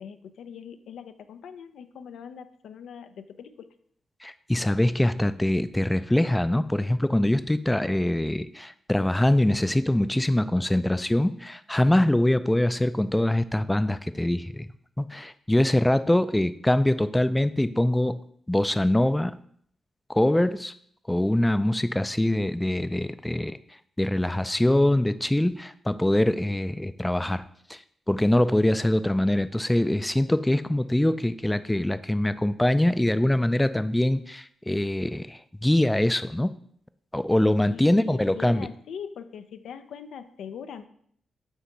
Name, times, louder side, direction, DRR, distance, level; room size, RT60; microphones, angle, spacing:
voice 1, 0.0-3.7 37.7-40.9, left 7 dB, 85° left, 10 dB, 0.4 m, -41 dB
voice 2, 4.2-14.7 15.0-18.2 18.5-19.4 20.1-20.7 21.1-23.6 24.0-27.4 27.7-27.8 28.1-36.5 37.1-38.7, left 1 dB, 10° left, 12 dB, 0.3 m, -23 dB
8.0 x 2.8 x 4.5 m, 0.63 s
cardioid pair, 70°, 0 cm